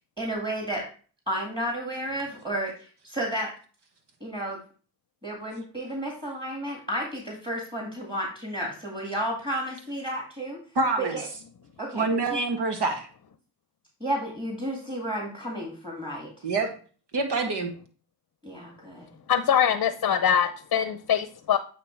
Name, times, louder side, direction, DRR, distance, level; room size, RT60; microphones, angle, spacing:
voice 1, 0.2-0.8 1.3-2.7 3.0-3.5 4.2-4.6 5.2-10.6 11.1-11.2 11.8-12.1 12.3-12.4 14.0-16.3 18.4-19.1, right 1 dB, 10° right, -1 dB, 2.1 m, -32 dB
voice 2, 10.7-11.2 11.9-13.1 16.4-16.7 17.1-17.7, right 3 dB, 70° right, 5 dB, 1.5 m, -26 dB
voice 3, 19.3-21.6, left 8 dB, 50° left, 11 dB, 0.7 m, -23 dB
8.6 x 2.9 x 4.6 m, 0.40 s
supercardioid pair, 45°, 42 cm